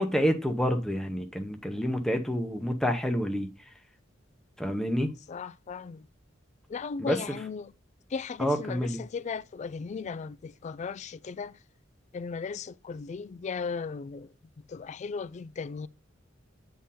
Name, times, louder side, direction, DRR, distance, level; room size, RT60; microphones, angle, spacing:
voice 1, 0.0-3.5 4.6-5.1 7.0-7.2 8.4-9.0, equal, 5° left, 0.7 m, -28 dB
voice 2, 5.3-6.0 6.7-7.7 8.1-11.5 12.1-14.3 14.7-15.9, left 5 dB, 35° left, 0.3 m, -36 dB
8.6 x 3.8 x 4.2 m
head